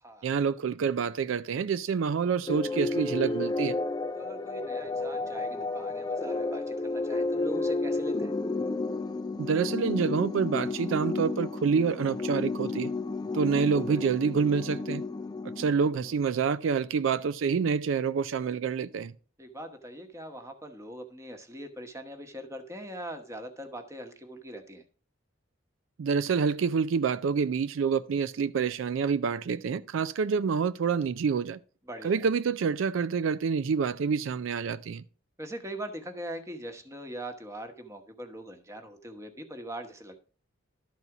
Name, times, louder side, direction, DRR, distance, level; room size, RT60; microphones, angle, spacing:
voice 1, 0.2-3.8 9.4-12.9 13.3-15.0 15.4-19.1 26.0-31.6 32.0-35.0, right 6 dB, 80° right, 0.4 m, -27 dB
sound 1, 2.5-16.2, left 3 dB, 20° left, 0.3 m, -32 dB
voice 2, 4.2-8.3 13.9-14.0 19.4-24.8 31.9-32.2 35.4-40.2, right 1 dB, 15° right, 1.0 m, -41 dB
12.0 x 4.1 x 5.9 m
head